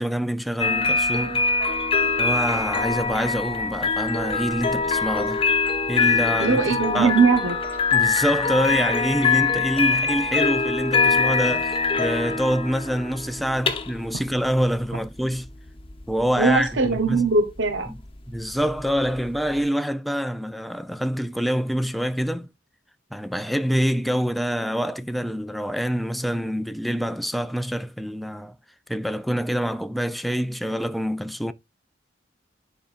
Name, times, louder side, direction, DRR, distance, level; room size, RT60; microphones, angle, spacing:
voice 1, 0.0-1.4 2.2-5.4 5.9-6.6 6.9-7.1 7.9-15.5 16.1-17.3 17.9-18.0 18.3-22.5 23.1-28.5 28.9-31.5, equal, ahead, 0.4 m, -26 dB
sound 1, 0.6-19.6, left 4 dB, 30° left, 0.9 m, -24 dB
voice 2, 6.4-7.6 16.4-17.9, right 4 dB, 80° right, 0.9 m, -21 dB
9.6 x 5.0 x 2.5 m
head